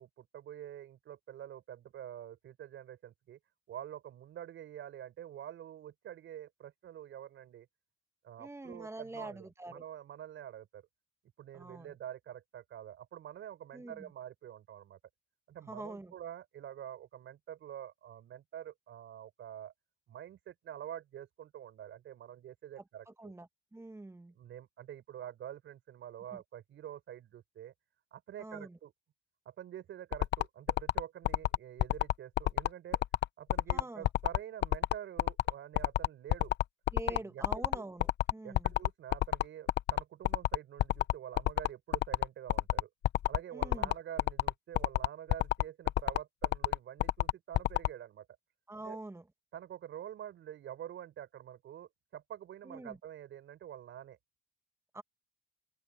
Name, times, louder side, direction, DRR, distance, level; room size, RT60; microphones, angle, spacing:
voice 1, 0.0-3.4 3.7-7.7 8.2-10.8 11.4-15.0 15.5-19.7 20.1-23.3 24.3-27.7 28.1-28.9 29.5-33.0 33.4-36.5 37.1-37.8 38.4-42.9 43.3-48.3 48.8-49.0 49.5-54.2, right 11 dB, 75° right, 5.9 m, -47 dB
voice 2, 8.4-9.8 11.5-12.0 13.7-14.1 15.7-16.1 23.1-24.3 28.4-28.8 33.7-34.1 36.9-38.7 43.5-43.9 48.7-49.3 52.6-53.0 54.9-55.0, right 2 dB, 15° right, 2.0 m, -45 dB
sound 1, 30.1-47.9, left 13 dB, 65° left, 0.6 m, -28 dB
cardioid pair, 90°, 20 cm